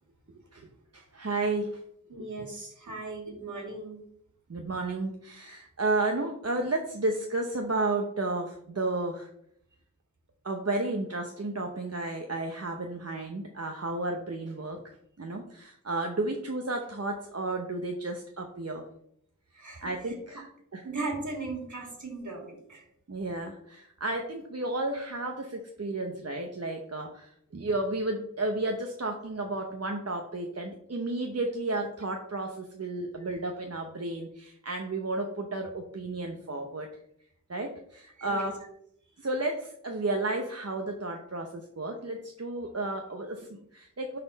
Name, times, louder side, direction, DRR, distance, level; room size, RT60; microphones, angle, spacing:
voice 1, 0.9-1.8 4.5-9.3 10.4-18.9 19.8-20.5 20.7-20.8 23.1-36.9 37.5-38.5 39.2-44.2, right 2 dB, 50° right, 2 dB, 1.0 m, -32 dB
voice 2, 2.1-4.0 19.5-20.4 20.8-22.9 33.2-33.4 38.2-38.5, right 3 dB, 65° right, 0 dB, 2.5 m, -38 dB
10.5 x 4.3 x 4.1 m, 0.71 s
wide cardioid pair, 55°, 32 cm